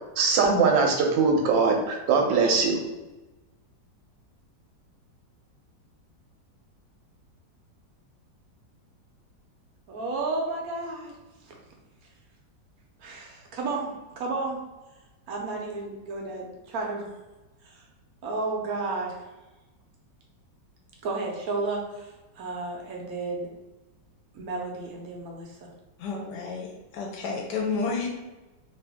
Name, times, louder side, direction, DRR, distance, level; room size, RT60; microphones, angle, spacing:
voice 1, 0.2-2.8, right 4 dB, 85° right, 2 dB, 1.4 m, -21 dB
voice 2, 9.9-11.1 11.5-11.6 13.0-14.6 15.3-17.1 17.6-17.8 18.2-19.2 21.0-23.5 24.3-25.7, right 3 dB, 65° right, 0 dB, 1.0 m, -32 dB
voice 3, 26.0-28.1, left 4 dB, 75° left, 1 dB, 1.1 m, -31 dB
3.0 x 2.6 x 3.4 m, 1.1 s
omnidirectional pair, 1.9 m